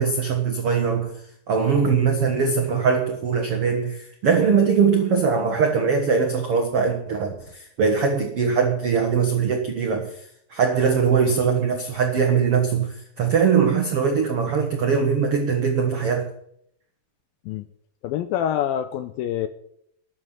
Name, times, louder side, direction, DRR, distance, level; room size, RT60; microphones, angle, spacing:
voice 1, 0.0-10.2 10.5-16.3, right 6 dB, 80° right, 1.3 m, -21 dB
voice 2, 18.0-19.5, left 10 dB, 80° left, 2.1 m, -26 dB
13.0 x 7.6 x 8.0 m
omnidirectional pair, 4.8 m